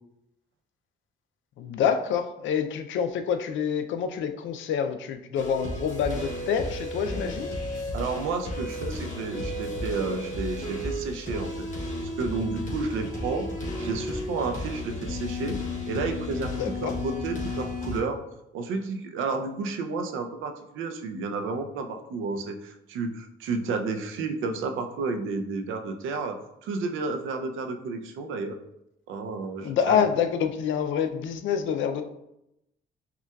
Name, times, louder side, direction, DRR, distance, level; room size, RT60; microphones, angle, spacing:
voice 1, 1.6-7.5 16.4-16.9 29.6-32.0, left 7 dB, 75° left, 8 dB, 0.4 m, -27 dB
sound 1, 5.3-18.0, left 1 dB, 40° left, 1.0 m, -33 dB
voice 2, 7.9-11.7 12.2-13.5 13.8-15.6 15.9-18.2 18.5-28.6 29.1-30.0, right 4 dB, 85° right, 6 dB, 0.5 m, -31 dB
5.6 x 2.3 x 2.3 m, 0.83 s
cardioid pair, 90°, 20 cm